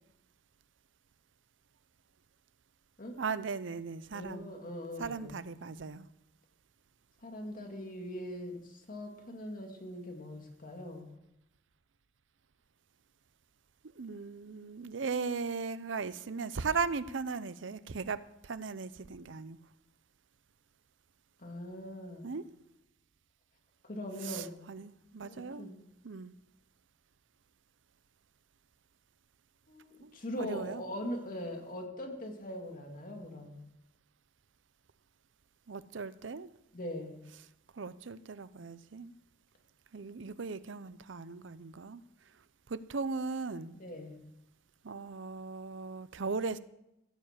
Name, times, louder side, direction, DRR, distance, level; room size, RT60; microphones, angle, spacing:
voice 1, 3.2-4.5 5.0-6.0 14.0-19.6 22.2-22.5 24.2-25.7 26.0-26.3 30.0-30.8 35.7-36.5 37.7-39.1 39.9-42.0 42.7-43.8 44.8-46.6, right 4 dB, 75° right, 15 dB, 0.6 m, -38 dB
voice 2, 4.1-5.3 7.2-11.1 21.4-22.3 23.8-24.7 25.2-25.8 29.7-33.6 36.7-37.2 43.8-44.2, left 1 dB, 45° left, 3 dB, 2.2 m, -41 dB
15.5 x 7.2 x 7.4 m, 0.85 s
head